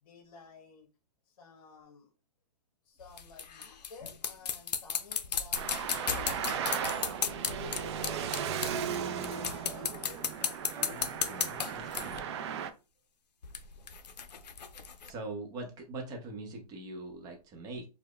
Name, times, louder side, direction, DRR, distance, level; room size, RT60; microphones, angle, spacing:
voice 1, 0.0-0.9 1.3-2.1 2.9-6.3 7.0-8.8 9.3-10.6, left 5 dB, 60° left, 1.0 m, -52 dB
sound 1, 3.0-9.0 9.2-12.2 13.4-15.1, left 7 dB, 90° left, 0.5 m, -35 dB
Traffic noise roadway noise, 5.5-12.7, right 8 dB, 45° right, 0.4 m, -36 dB
voice 2, 10.7-12.2 15.0-17.9, right 2 dB, 20° right, 0.7 m, -42 dB
4.7 x 2.1 x 2.2 m
hypercardioid pair, 140°, 21 cm